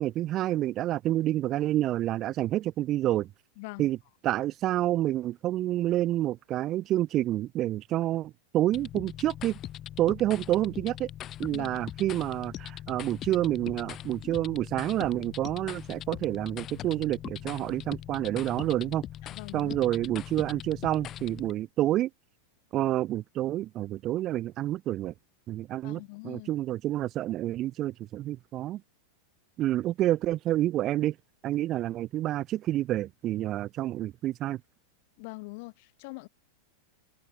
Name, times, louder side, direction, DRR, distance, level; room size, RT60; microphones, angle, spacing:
voice 1, 0.0-3.3 3.8-4.0 4.2-9.6 10.0-11.1 11.4-19.0 19.5-22.1 22.7-25.1 25.5-28.8 29.6-31.1 31.4-34.6, right 14 dB, 35° right, 0.8 m, -28 dB
voice 2, 3.6-3.9 11.5-11.8 19.2-19.8 25.8-26.5 35.2-36.3, left 28 dB, 45° left, 4.1 m, -43 dB
sound 1, 8.7-21.5, left 12 dB, 30° left, 1.4 m, -41 dB
figure-of-eight pair, 90°, 0 cm